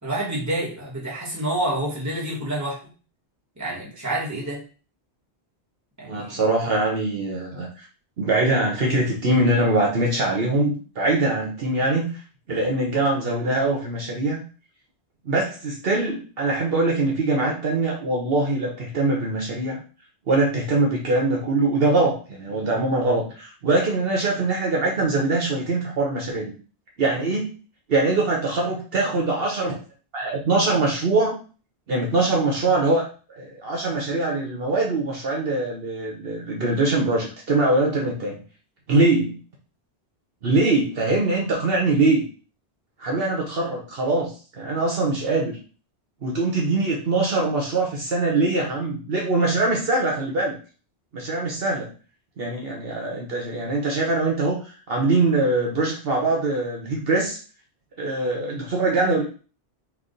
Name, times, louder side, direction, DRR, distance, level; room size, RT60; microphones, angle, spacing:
voice 1, 0.0-2.8 3.6-4.6 6.0-6.4, right 1 dB, 15° right, -5 dB, 1.4 m, -28 dB
voice 2, 6.1-7.8 8.2-12.2 12.5-14.4 15.2-19.8 20.3-26.5 27.0-27.5 27.9-29.7 30.1-31.4 31.9-33.0 33.4-38.4 38.9-39.4 40.4-42.2 43.0-45.6 46.2-50.5 51.1-51.9 52.4-57.4 58.0-59.2, right 2 dB, 60° right, -1 dB, 1.1 m, -23 dB
3.5 x 2.5 x 3.8 m, 0.37 s
omnidirectional pair, 1.1 m